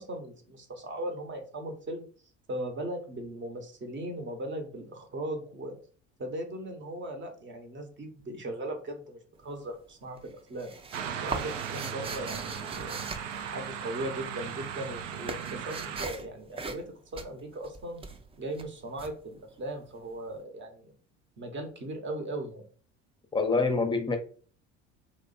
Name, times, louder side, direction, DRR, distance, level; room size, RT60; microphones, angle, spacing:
voice 1, 0.0-2.1 2.5-5.8 6.2-10.7 11.2-13.0 13.4-18.0 18.4-20.9 21.4-22.7, right 1 dB, 30° right, 1.0 m, -38 dB
sound 1, 9.3-9.9 10.2-14.2 14.5-20.1, right 4 dB, 15° right, 0.4 m, -41 dB
sound 2, 10.9-16.1, right 8 dB, 80° right, 0.5 m, -37 dB
voice 2, 23.3-24.2, left 3 dB, 15° left, 0.7 m, -26 dB
3.0 x 2.1 x 4.1 m
hypercardioid pair, 65°, 36 cm